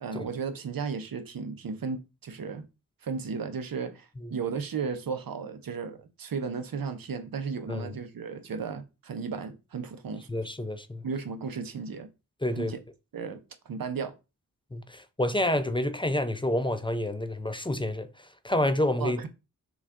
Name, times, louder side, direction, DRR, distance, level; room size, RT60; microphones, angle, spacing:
voice 1, 0.0-2.6 3.0-10.3 11.0-12.1 12.6-12.8 13.1-13.4 13.7-14.1 19.0-19.3, right 5 dB, 90° right, 0.7 m, -34 dB
voice 2, 10.3-11.0 12.4-12.7 14.7-18.1 18.4-19.3, left 1 dB, 15° left, 0.4 m, -28 dB
6.1 x 2.4 x 3.5 m
wide cardioid pair, 65°, 34 cm